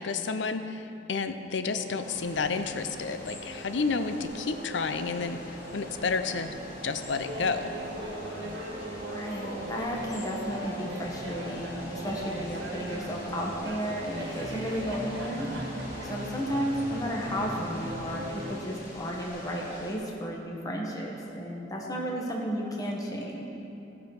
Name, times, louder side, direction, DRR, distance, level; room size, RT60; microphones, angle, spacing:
voice 1, 0.0-6.5 6.8-7.7 12.4-12.5, left 4 dB, 75° left, 9 dB, 0.6 m, -31 dB
sound 1, 1.7-18.6, equal, 40° right, 1.2 m, -41 dB
sound 2, 2.0-19.9, left 1 dB, 50° left, 2.6 m, -45 dB
Laughter, 7.2-13.2 13.6-16.2, right 2 dB, 85° right, 1.6 m, -41 dB
voice 2, 9.1-15.5 16.0-23.5, equal, 20° left, -2 dB, 1.2 m, -33 dB
17.0 x 6.3 x 4.8 m, 2.8 s
head